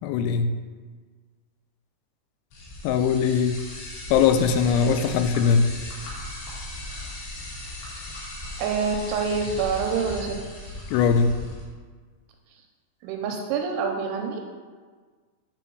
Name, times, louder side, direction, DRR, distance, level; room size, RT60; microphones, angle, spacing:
voice 1, 0.0-0.6 2.8-3.6 4.1-5.7 10.9-11.4, left 6 dB, 90° left, 9 dB, 3.2 m, -21 dB
sound 1, 2.5-11.6, left 1 dB, 70° left, 4.4 m, -37 dB
voice 2, 8.6-10.3 10.7-10.8 13.0-14.4, right 5 dB, 80° right, 2 dB, 2.9 m, -26 dB
9.9 x 4.2 x 4.6 m, 1.5 s
omnidirectional pair, 5.8 m